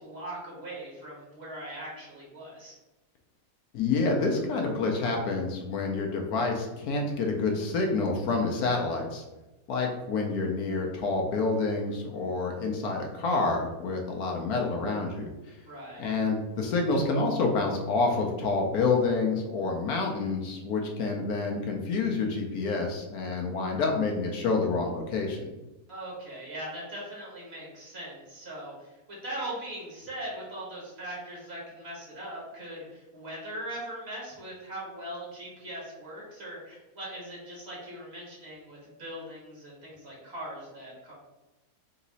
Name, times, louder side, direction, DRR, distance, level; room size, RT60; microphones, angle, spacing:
voice 1, 0.0-2.7 15.7-16.1 25.9-41.1, right 1 dB, 40° right, -5 dB, 1.6 m, -40 dB
voice 2, 3.7-9.2 9.7-15.3 16.0-25.4, left 3 dB, 70° left, 1 dB, 1.2 m, -28 dB
4.0 x 2.8 x 4.0 m, 1.1 s
omnidirectional pair, 1.7 m